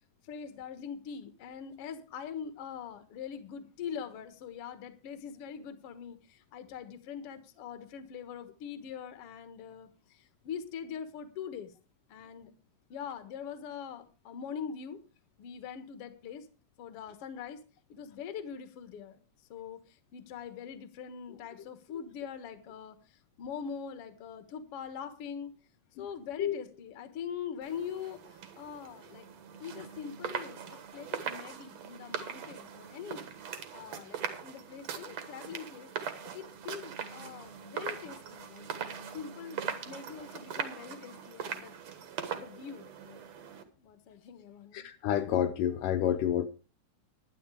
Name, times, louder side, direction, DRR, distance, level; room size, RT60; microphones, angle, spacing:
voice 1, 0.2-11.7 12.1-12.5 12.9-15.0 15.4-16.5 16.8-17.6 17.9-19.2 19.5-25.5 26.0-28.2 28.5-29.3 29.6-33.3 33.7-35.9 36.3-39.6 39.9-41.8 42.3-43.2 43.8-44.9, left 7 dB, 55° left, 1.9 m, -43 dB
sound 1, 27.6-43.6, right 7 dB, 55° right, 2.4 m, -41 dB
voice 2, 44.7-46.5, left 10 dB, 75° left, 2.2 m, -29 dB
11.0 x 11.0 x 4.9 m
omnidirectional pair, 4.0 m